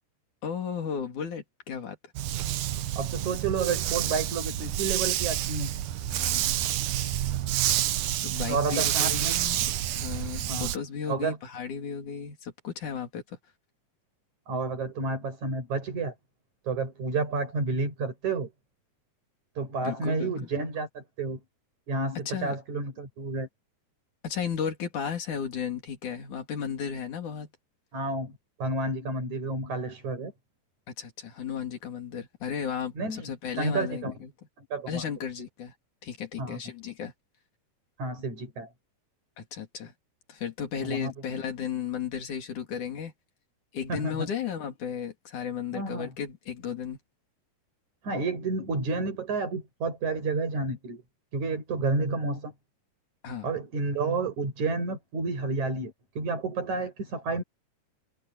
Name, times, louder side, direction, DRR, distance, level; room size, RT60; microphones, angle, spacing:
voice 1, 0.4-2.0 6.1-6.6 8.2-9.7 9.9-13.4 19.8-20.5 22.3-22.6 24.2-27.5 30.9-34.3 34.9-35.7 36.0-37.1 39.4-39.9 40.3-43.1 43.7-47.0 53.2-53.5, left 7 dB, 80° left, 4.5 m, -34 dB
Dog, 2.2-10.8, right 12 dB, 90° right, 2.5 m, -28 dB
voice 2, 3.0-5.7 6.6-6.7 8.5-9.4 10.5-10.7 11.1-11.4 14.5-16.1 16.6-18.5 19.6-21.4 21.9-23.5 27.9-28.3 28.6-30.3 33.0-33.3 33.6-34.1 34.7-35.0 36.4-36.6 38.0-38.7 40.8-41.1 43.9-44.3 45.7-46.1 48.0-51.0 51.3-52.5 53.4-57.4, right 3 dB, 70° right, 8.2 m, -30 dB
omnidirectional pair, 3.4 m